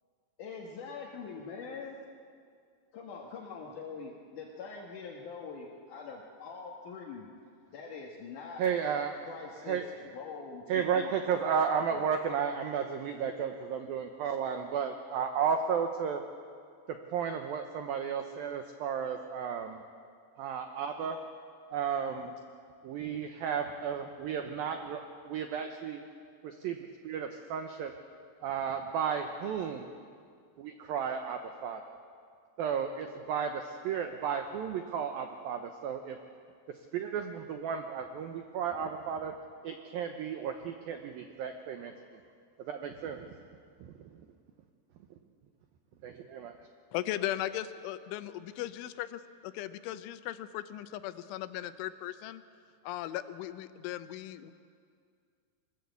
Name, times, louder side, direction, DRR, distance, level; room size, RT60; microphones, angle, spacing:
voice 1, 0.4-2.0 2.9-7.3 7.7-8.7 9.3-12.1, left 5 dB, 60° left, -2 dB, 2.4 m, -44 dB
voice 2, 8.6-9.3 9.7-9.8 10.7-16.2 17.1-19.8 20.4-21.2 21.7-22.3 22.8-26.0 26.4-26.8 27.0-27.9 28.4-29.9 30.6-31.9 32.6-36.2 36.9-39.3 39.6-41.9 42.6-43.4 43.8-44.1 46.0-46.5, right 7 dB, 80° right, 6 dB, 2.1 m, -33 dB
voice 3, 46.9-52.4 52.8-54.5, left 13 dB, 85° left, 11 dB, 3.3 m, -37 dB
23.0 x 21.0 x 8.3 m, 2.2 s
omnidirectional pair, 5.5 m